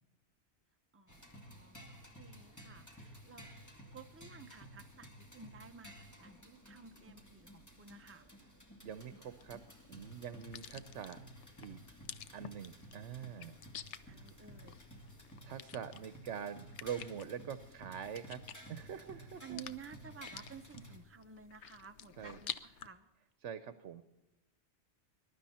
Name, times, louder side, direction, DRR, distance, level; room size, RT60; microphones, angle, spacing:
voice 1, 0.9-3.5 3.9-8.3 14.1-14.9 19.4-23.1, right 6 dB, 15° right, 6 dB, 0.6 m, -53 dB
sound 1, 1.1-21.0, equal, 15° left, 1.9 m, -54 dB
voice 2, 8.8-9.6 9.9-11.2 11.6-11.8 12.3-13.6 15.4-18.4 18.7-19.6 22.2-22.4 23.4-24.0, right 8 dB, 80° right, 12 dB, 1.1 m, -44 dB
sound 2, 8.9-22.9, left 9 dB, 75° left, 1.0 m, -51 dB
21.0 x 11.5 x 4.3 m, 0.98 s
omnidirectional pair, 1.2 m